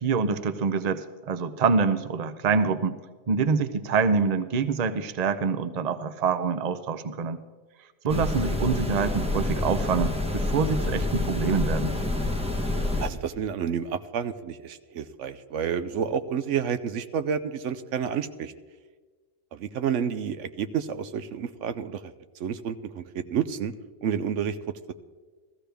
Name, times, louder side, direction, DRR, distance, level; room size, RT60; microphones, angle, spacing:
voice 1, 0.0-3.0 3.3-7.4 8.0-11.9, right 5 dB, 40° right, 11 dB, 0.6 m, -26 dB
sound 1, 8.1-13.1, left 2 dB, 5° right, 0.9 m, -27 dB
voice 2, 13.0-18.5 19.5-22.1 22.4-23.7 24.0-24.6 24.9-25.0, right 7 dB, 80° right, 11 dB, 1.0 m, -30 dB
15.0 x 14.5 x 3.4 m, 1.4 s
omnidirectional pair, 1.3 m